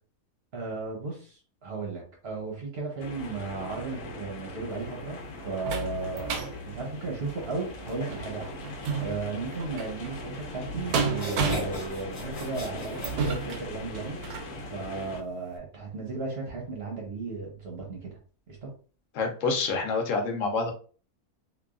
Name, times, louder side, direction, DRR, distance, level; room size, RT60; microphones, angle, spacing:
voice 1, 0.5-5.2 5.4-14.2 14.7-18.2 18.5-18.7, right 3 dB, 55° right, 0 dB, 0.8 m, -35 dB
sound 1, 3.0-15.2, left 1 dB, 85° left, 1.2 m, -40 dB
sound 2, 4.7-14.5 15.1-15.2 15.6-15.7, right 4 dB, 85° right, 1.1 m, -34 dB
sound 3, 10.5-10.6 11.1-14.0, equal, 30° left, 1.3 m, -38 dB
voice 2, 19.1-20.7, left 4 dB, 65° left, 3 dB, 1.0 m, -27 dB
2.9 x 2.3 x 2.4 m, 0.39 s
omnidirectional pair, 1.6 m